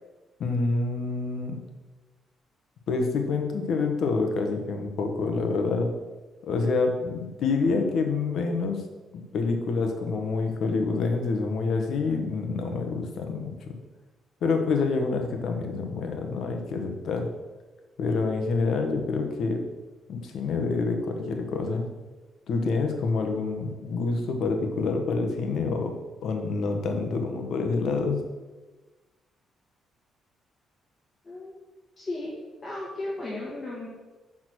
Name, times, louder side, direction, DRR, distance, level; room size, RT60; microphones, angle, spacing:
voice 1, 0.4-1.6 2.9-5.9 6.4-8.8 9.3-13.8 14.4-17.3 18.0-19.6 20.1-21.8 22.5-25.9 26.2-28.2, left 4 dB, 70° left, 4 dB, 1.1 m, -27 dB
voice 2, 32.0-32.3 32.6-33.9, left 2 dB, 25° left, -6 dB, 1.7 m, -35 dB
6.1 x 3.7 x 6.2 m, 1.2 s
cardioid pair, 90°, 0 cm